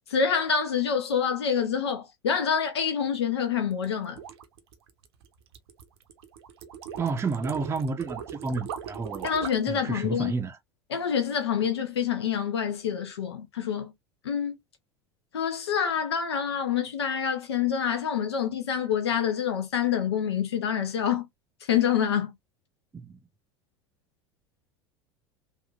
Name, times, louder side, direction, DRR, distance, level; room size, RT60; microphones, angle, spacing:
voice 1, 0.1-4.2 9.2-10.3 10.9-13.9 14.2-14.6 15.3-21.3 21.6-22.3, left 7 dB, 80° left, 0.6 m, -27 dB
sound 1, 3.7-9.8, right 8 dB, 75° right, 0.7 m, -40 dB
voice 2, 7.0-9.3 9.7-10.6 22.9-23.2, right 4 dB, 20° right, 0.5 m, -31 dB
3.5 x 2.4 x 2.4 m
hypercardioid pair, 75°, 14 cm